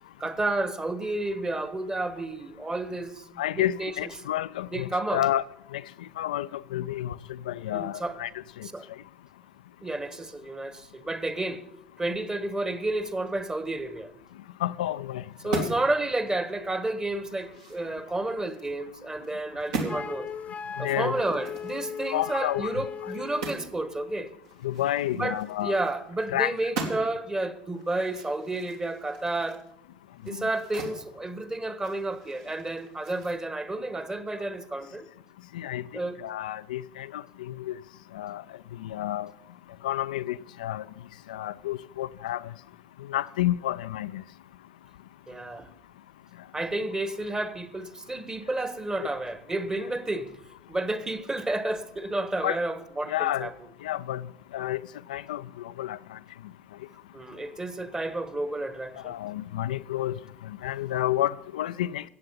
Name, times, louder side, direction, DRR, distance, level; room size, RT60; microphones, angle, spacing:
voice 1, 0.2-3.3 3.5-4.1 4.7-5.2 7.7-8.2 8.7-8.9 9.8-11.6 12.0-14.1 15.4-20.3 20.8-24.3 25.1-29.6 30.3-35.1 35.9-36.2 45.3-45.7 46.5-50.4 50.7-53.5 57.1-59.2, right 2 dB, 15° right, 1.3 m, -31 dB
voice 2, 3.4-5.4 5.7-5.8 6.2-7.1 7.5-8.3 14.6-15.7 20.8-21.2 22.1-22.7 23.0-23.1 24.6-25.8 26.3-26.5 35.5-35.8 36.2-37.8 38.1-38.4 38.8-39.3 39.8-40.8 41.3-42.4 43.1-44.2 52.4-52.6 53.1-53.5 53.8-54.2 54.5-54.8 55.1-55.4 55.8-56.2 59.0-60.1 60.6-62.0, left 13 dB, 70° left, 0.3 m, -30 dB
sound 1, 15.3-16.0 16.4-16.5 17.0-18.7 19.1-19.3 19.6-20.0 21.1-23.8 24.0-24.1 24.4-26.3 26.5-27.3 27.7-31.0 31.4-33.3, right 3 dB, 65° right, 2.5 m, -38 dB
Wind instrument woodwind instrument, 19.9-23.6, left 7 dB, 30° left, 0.7 m, -37 dB
15.0 x 8.9 x 5.5 m
figure-of-eight pair, 65°, 4 cm